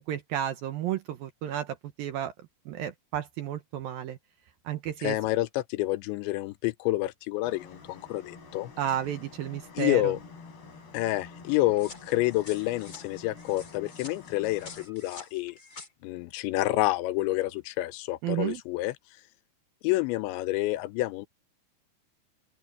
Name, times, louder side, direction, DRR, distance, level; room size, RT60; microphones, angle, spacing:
voice 1, 0.0-2.3 2.7-4.2 4.7-5.2 8.8-10.1 18.2-18.6, right 11 dB, 70° right, 2.3 m, -32 dB
voice 2, 5.0-8.7 9.8-10.2 10.9-15.6 16.0-19.0 19.8-21.3, left 17 dB, 85° left, 3.0 m, -28 dB
sound 1, 7.4-14.9, left 4 dB, 60° left, 7.3 m, -48 dB
sound 2, 11.8-15.9, left 4 dB, 25° left, 2.3 m, -48 dB
open air
omnidirectional pair, 5.2 m